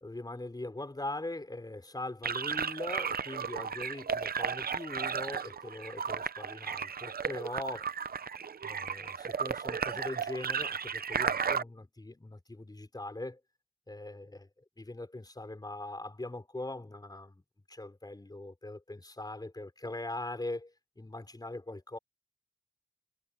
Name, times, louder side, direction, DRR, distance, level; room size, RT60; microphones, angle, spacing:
voice 1, 0.0-7.9 8.6-13.4 13.9-14.5 14.8-17.4 17.7-22.0, left 2 dB, 25° left, 5.0 m, -41 dB
sound 1, 2.2-11.6, right 6 dB, 75° right, 0.6 m, -34 dB
wide cardioid pair, 95°, 16 cm